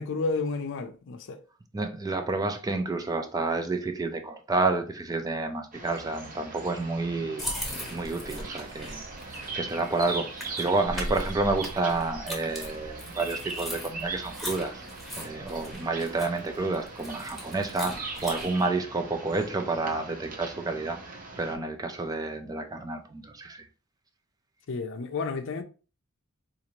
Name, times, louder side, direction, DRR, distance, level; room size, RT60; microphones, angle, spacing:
voice 1, 0.0-1.4 24.7-25.6, left 4 dB, 60° left, 0.5 m, -31 dB
voice 2, 1.7-7.5 7.9-14.8 15.2-21.0 21.4-23.6, right 3 dB, 15° right, 0.3 m, -30 dB
sound 1, 5.7-21.6, right 3 dB, 40° right, 0.7 m, -40 dB
sound 2, 7.4-18.6, equal, ahead, 0.9 m, -39 dB
3.9 x 2.5 x 2.9 m
head